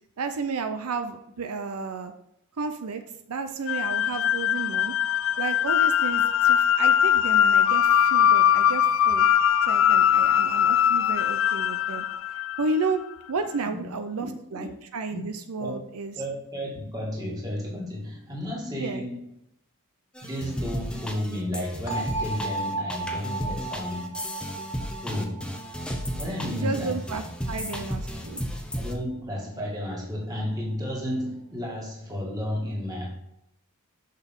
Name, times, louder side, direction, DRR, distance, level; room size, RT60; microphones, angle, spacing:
voice 1, 0.2-2.1 2.6-3.0 3.3-4.9 5.4-9.3 9.7-12.1 12.6-13.0 13.3-16.1 18.8-19.0 26.4-28.4, right 4 dB, 85° right, 8 dB, 0.6 m, -32 dB
sound 1, 3.7-12.8, left 9 dB, 60° left, 0.3 m, -21 dB
voice 2, 13.7-14.7 15.1-15.3 15.6-15.8 16.2-19.3 20.2-24.2 25.0-25.5 26.2-27.0 28.7-33.1, left 1 dB, 15° right, -3 dB, 2.0 m, -32 dB
sound 2, 20.2-28.9, equal, 5° left, 0.7 m, -34 dB
sound 3, 21.9-27.7, right 2 dB, 85° left, 1.8 m, -35 dB
6.5 x 6.0 x 3.6 m, 0.81 s
head